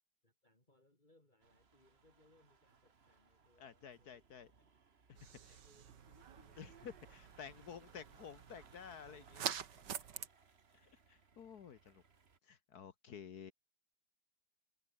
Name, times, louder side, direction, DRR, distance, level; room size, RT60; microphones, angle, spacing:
voice 1, 0.2-4.3 4.6-4.8 5.4-7.2, left 1 dB, 25° left, 5.2 m, -71 dB
sound 1, 1.4-12.4, right 5 dB, 40° right, 1.8 m, -67 dB
voice 2, 3.6-4.5 5.1-5.6 6.6-9.5 10.7-12.0 12.4-13.5, left 7 dB, 65° left, 1.7 m, -52 dB
sound 2, 5.2-10.3, right 8 dB, 90° right, 2.0 m, -47 dB
omnidirectional pair, 1.8 m